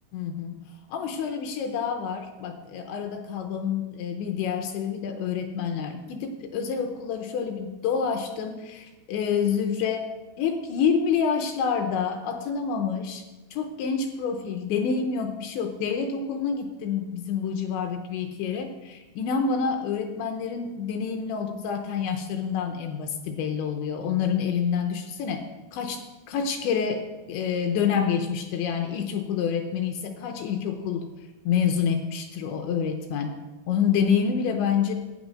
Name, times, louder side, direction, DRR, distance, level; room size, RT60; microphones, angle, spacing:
voice 1, 0.1-0.6 0.9-10.1 10.4-13.2 13.5-31.1 31.5-34.9, left 6 dB, 80° left, 6 dB, 2.7 m, -28 dB
11.5 x 9.0 x 6.2 m, 1.1 s
omnidirectional pair, 5.8 m